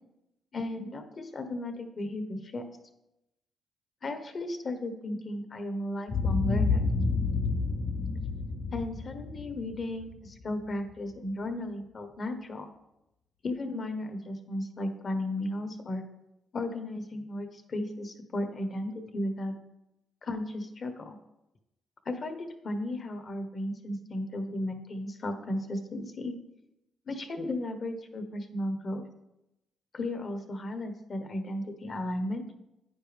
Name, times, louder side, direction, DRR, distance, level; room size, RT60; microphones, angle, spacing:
voice 1, 0.5-2.6 4.0-6.9 8.7-12.7 13.4-16.0 16.5-19.5 20.2-21.2 22.0-26.3 27.1-29.0 29.9-32.4, left 1 dB, 40° left, 7 dB, 1.2 m, -35 dB
Boom, 6.1-10.4, left 4 dB, 70° left, 3.3 m, -29 dB
10.0 x 9.6 x 3.5 m, 0.90 s
cardioid pair, 140°, 0 cm